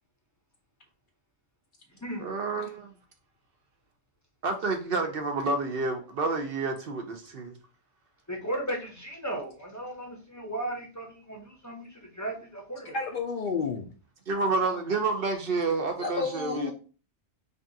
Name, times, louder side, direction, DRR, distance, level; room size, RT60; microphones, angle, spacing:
voice 1, 2.2-2.9 4.4-7.6 14.3-16.7, right 3 dB, 60° right, 0.8 m, -29 dB
voice 2, 8.3-13.0, right 1 dB, 20° left, 0.6 m, -36 dB
voice 3, 12.9-13.9 16.0-16.7, left 4 dB, 55° left, 0.6 m, -30 dB
5.1 x 2.4 x 2.7 m
omnidirectional pair, 1.2 m